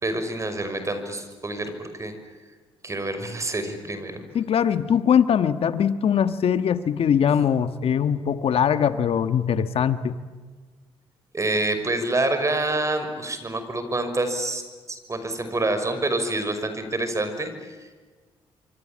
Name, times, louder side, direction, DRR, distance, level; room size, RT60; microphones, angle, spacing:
voice 1, 0.0-2.1 2.8-4.2 11.3-14.6 14.9-17.7, right 2 dB, 30° right, 9 dB, 5.8 m, -27 dB
voice 2, 4.3-10.1, left 8 dB, 65° left, 11 dB, 1.5 m, -21 dB
27.5 x 24.0 x 8.9 m, 1.4 s
cardioid pair, 75°, 11 cm